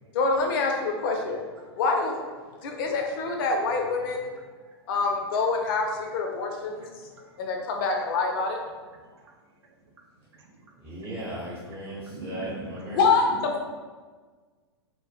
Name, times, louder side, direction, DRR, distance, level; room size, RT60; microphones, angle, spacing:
voice 1, 0.1-1.4 1.8-2.2 2.6-4.2 4.9-6.9 7.4-8.6 12.8-13.5, left 4 dB, 55° left, 2 dB, 0.5 m, -26 dB
voice 2, 10.8-13.0, right 1 dB, 15° right, -10 dB, 0.8 m, -36 dB
voice 3, 12.0-12.7, right 2 dB, 80° right, 1 dB, 0.5 m, -41 dB
2.1 x 2.1 x 3.2 m, 1.4 s
hypercardioid pair, 110°, 14 cm